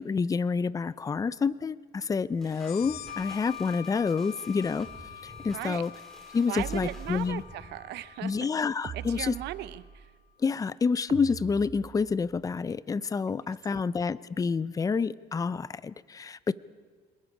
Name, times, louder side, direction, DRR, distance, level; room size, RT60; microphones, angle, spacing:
voice 1, 0.0-4.9 5.2-5.9 6.3-7.4 8.2-9.3 10.4-16.5, left 5 dB, 20° left, 18 dB, 0.5 m, -28 dB
sound 1, 2.4-7.7, equal, 5° left, 5.6 m, -50 dB
sound 2, 2.5-9.8, left 9 dB, 70° left, 0.8 m, -45 dB
voice 2, 5.5-5.8 6.5-8.3 8.9-10.1 13.3-13.9, right 14 dB, 80° right, 15 dB, 0.8 m, -38 dB
sound 3, 6.6-7.6 8.8-10.1 11.1-12.3, right 7 dB, 35° right, 0.8 m, -42 dB
27.0 x 20.5 x 4.9 m, 1.5 s
cardioid pair, 110°, 17 cm